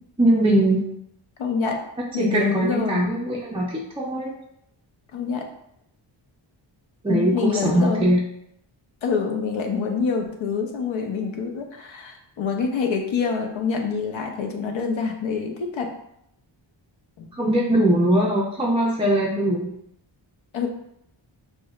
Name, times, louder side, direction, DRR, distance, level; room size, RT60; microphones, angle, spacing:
voice 1, 0.2-0.8 2.2-4.3 7.0-8.2 17.4-19.7, right 1 dB, 10° right, -3 dB, 0.4 m, -21 dB
voice 2, 1.4-1.8 2.1-3.1 5.1-5.5 7.1-8.1 9.0-15.9 17.2-17.3 20.5-20.7, left 5 dB, 75° left, 3 dB, 0.7 m, -26 dB
6.0 x 2.2 x 2.3 m, 0.75 s
wide cardioid pair, 125°, 48 cm